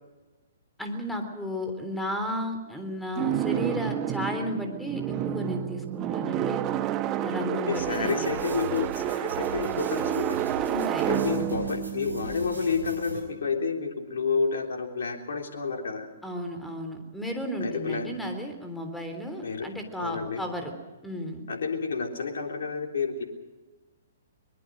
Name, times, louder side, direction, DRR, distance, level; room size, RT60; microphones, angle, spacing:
voice 1, 0.8-6.6 7.2-8.3 10.7-11.5 16.2-20.7 21.0-21.4, equal, 5° left, 5 dB, 3.6 m, -33 dB
sound 1, 3.2-13.1, right 11 dB, 25° right, 1.2 m, -30 dB
voice 2, 7.7-10.4 11.1-16.1 17.6-18.1 19.4-19.7 20.0-20.4 21.5-23.3, left 5 dB, 60° left, 2 dB, 3.5 m, -30 dB
sound 2, 7.7-13.2, right 2 dB, 85° right, 5.9 m, -41 dB
22.5 x 21.5 x 6.4 m, 1.2 s
figure-of-eight pair, 120°, 0 cm